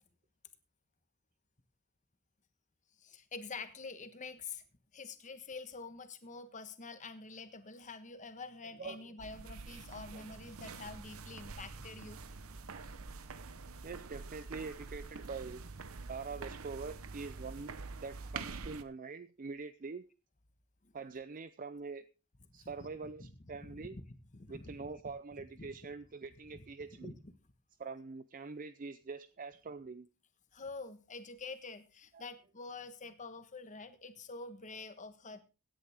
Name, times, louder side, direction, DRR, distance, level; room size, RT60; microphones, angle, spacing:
voice 1, 3.0-4.6 4.9-12.2 20.8-20.9 22.5-25.8 26.5-27.3 30.5-35.4, left 4 dB, 35° left, 10 dB, 1.3 m, -47 dB
voice 2, 8.8-9.1 10.1-10.2 12.7-12.9 13.8-15.6 16.1-17.7 18.0-20.1 20.9-22.0 22.5-24.0 24.5-27.1 27.8-30.1 32.1-32.2, right 4 dB, 40° right, 13 dB, 0.5 m, -44 dB
sound 1, 9.2-18.8, right 4 dB, 75° right, 0.9 m, -46 dB
16.5 x 10.0 x 3.5 m, 0.32 s
head